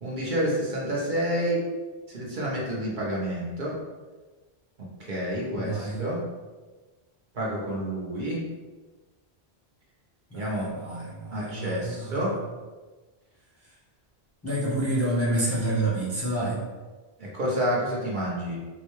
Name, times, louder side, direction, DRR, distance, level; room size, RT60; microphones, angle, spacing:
voice 1, 0.0-1.6 2.1-3.8 5.0-6.2 7.3-8.4 10.3-10.7 11.3-12.3 17.2-18.6, equal, 50° right, -5 dB, 0.9 m, -29 dB
voice 2, 5.5-6.0 10.3-12.3 14.4-16.6, right 1 dB, 15° left, -8 dB, 0.6 m, -28 dB
3.8 x 2.2 x 3.0 m, 1.3 s
omnidirectional pair, 1.1 m